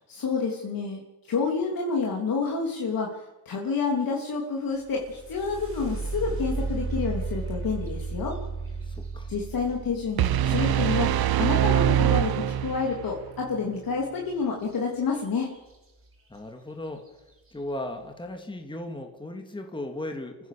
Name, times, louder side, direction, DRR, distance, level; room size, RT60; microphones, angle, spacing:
voice 1, 0.1-8.4 9.3-15.5, left 5 dB, 60° left, -1 dB, 3.4 m, -29 dB
sound 1, 4.7-12.5 14.6-14.8 15.2-15.7 16.3-16.4 17.0-17.3, right 4 dB, 35° right, 5.1 m, -35 dB
voice 2, 8.8-9.3 16.3-17.1 17.5-20.5, left 1 dB, 10° left, 4 dB, 2.3 m, -36 dB
sound 2, 10.2-13.2, right 11 dB, 70° right, 1.0 m, -23 dB
27.5 x 15.5 x 6.9 m, 1.0 s
cardioid pair, 110°, 39 cm